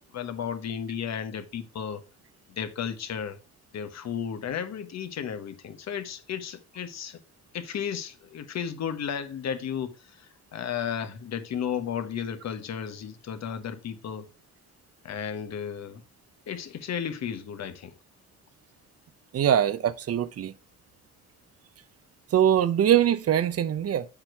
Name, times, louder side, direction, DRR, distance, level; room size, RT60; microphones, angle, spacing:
voice 1, 0.1-2.0 2.5-3.4 3.7-7.2 7.5-14.3 15.0-16.0 16.5-17.9, left 8 dB, 60° left, 1.3 m, -34 dB
voice 2, 19.3-20.5 22.3-24.1, right 10 dB, 50° right, 0.7 m, -22 dB
7.6 x 4.5 x 4.5 m
cardioid pair, 90°, 30 cm